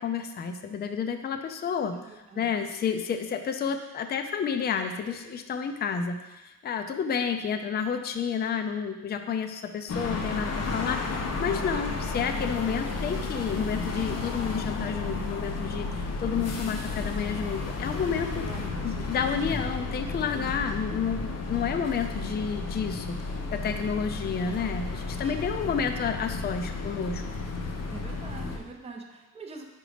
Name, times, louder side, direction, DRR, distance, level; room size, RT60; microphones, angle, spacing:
voice 1, 0.0-18.5 18.8-23.1 23.5-27.2, left 6 dB, 30° left, 7 dB, 0.4 m, -30 dB
voice 2, 1.9-2.7 18.2-19.6 20.3-20.7 23.6-24.1 25.2-25.5 27.9-29.7, right 4 dB, 15° right, 1 dB, 0.6 m, -45 dB
sound 1, 9.9-28.6, left 3 dB, 45° left, 0.8 m, -33 dB
5.1 x 4.9 x 5.0 m, 1.1 s
cardioid pair, 145°, 36 cm